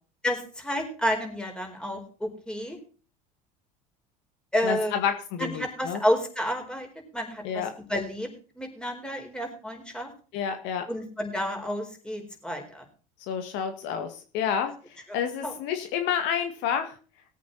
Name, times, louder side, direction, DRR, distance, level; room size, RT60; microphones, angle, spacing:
voice 1, 0.2-2.8 4.5-5.0 5.4-6.9 7.1-8.3 8.6-10.1 10.9-12.9 15.1-15.2 15.4-15.5, equal, 5° left, 3 dB, 4.5 m, -30 dB
voice 2, 4.6-6.0 7.4-7.7 10.3-10.8 13.3-17.0, left 8 dB, 70° left, 8 dB, 2.0 m, -29 dB
18.5 x 8.6 x 4.2 m, 0.38 s
supercardioid pair, 95°, 20 cm